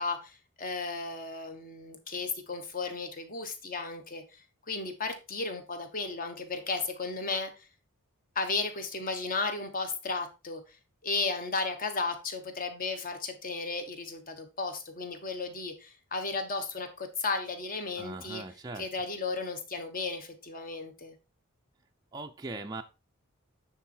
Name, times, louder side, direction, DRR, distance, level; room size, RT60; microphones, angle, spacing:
voice 1, 0.0-7.5 8.3-10.6 11.0-18.4 18.7-21.1, left 3 dB, 40° left, 7 dB, 1.3 m, -34 dB
voice 2, 18.0-18.8 22.1-22.8, right 2 dB, 15° right, 3 dB, 0.4 m, -40 dB
9.2 x 4.1 x 4.4 m, 0.30 s
head